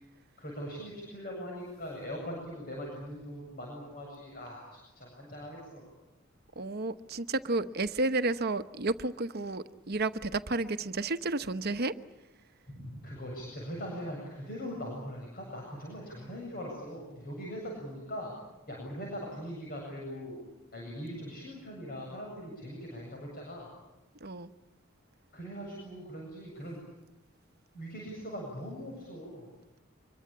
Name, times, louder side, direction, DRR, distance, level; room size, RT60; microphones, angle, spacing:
voice 1, 0.4-5.8 12.7-18.3 18.7-20.4 20.7-23.7 25.3-26.8 27.7-29.5, equal, 45° left, -1 dB, 7.9 m, -41 dB
voice 2, 6.6-11.9 24.2-24.5, right 2 dB, 50° right, 11 dB, 1.1 m, -31 dB
26.0 x 22.5 x 8.7 m, 1.0 s
head